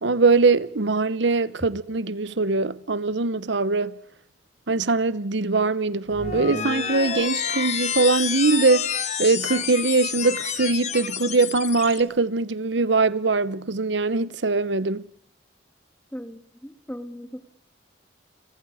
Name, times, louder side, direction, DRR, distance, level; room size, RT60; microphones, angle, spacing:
voice 1, 0.0-3.9 4.7-8.9 9.2-15.1, right 3 dB, 70° right, 0.9 m, -22 dB
sound 1, 6.1-12.0, left 7 dB, 35° left, 1.5 m, -29 dB
voice 2, 16.1-17.4, equal, 5° left, 2.1 m, -38 dB
29.5 x 22.5 x 4.9 m
head